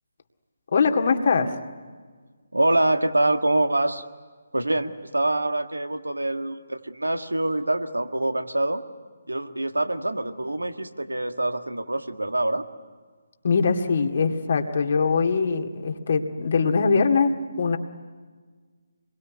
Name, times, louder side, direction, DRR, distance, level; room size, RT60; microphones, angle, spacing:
voice 1, 0.7-1.5 13.4-17.8, left 5 dB, 50° left, 4 dB, 2.2 m, -22 dB
voice 2, 2.5-4.0 4.5-8.8 9.3-12.6, right 1 dB, 90° right, 8 dB, 1.7 m, -25 dB
26.5 x 22.5 x 9.6 m, 1.5 s
figure-of-eight pair, 150°, 0 cm